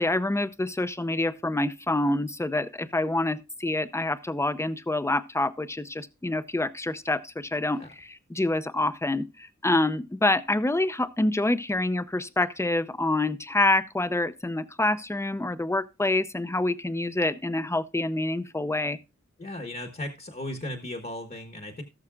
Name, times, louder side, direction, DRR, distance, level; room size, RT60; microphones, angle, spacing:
voice 1, 0.0-19.0, left 2 dB, 10° left, 0.6 m, -27 dB
voice 2, 19.4-21.8, left 1 dB, 30° left, 1.2 m, -36 dB
18.0 x 6.5 x 2.4 m
wide cardioid pair, 55°, 30 cm